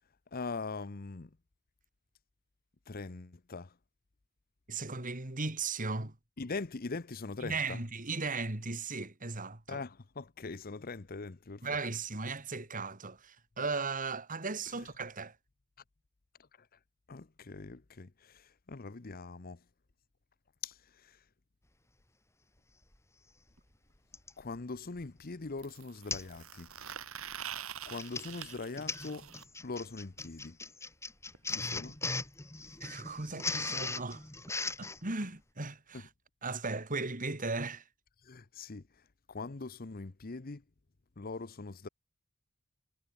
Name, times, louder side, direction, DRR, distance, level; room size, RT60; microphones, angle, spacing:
voice 1, 0.3-1.3 2.9-3.7 6.4-7.8 9.7-11.6 17.1-19.6 20.6-21.2 24.4-26.7 27.9-29.3 29.6-30.6 31.5-32.0 35.9-36.0 38.2-38.8 39.3-40.6 41.2-41.9, left 3 dB, 40° left, 0.8 m, -42 dB
voice 2, 4.7-6.1 7.4-9.8 11.6-15.3 32.8-34.2 34.8-36.1 36.4-37.8, right 3 dB, 40° right, 2.3 m, -37 dB
Printer, 22.9-23.0 24.1-24.4 25.0-25.2 25.5-25.6 26.1-26.4 26.7-27.0 27.8-35.0, left 3 dB, 15° left, 2.6 m, -39 dB
sound 1, 23.6-23.7 25.6-29.4 31.3-31.4 31.7-31.8 32.1-32.2 33.2-33.3, right 9 dB, 70° right, 4.6 m, -45 dB
head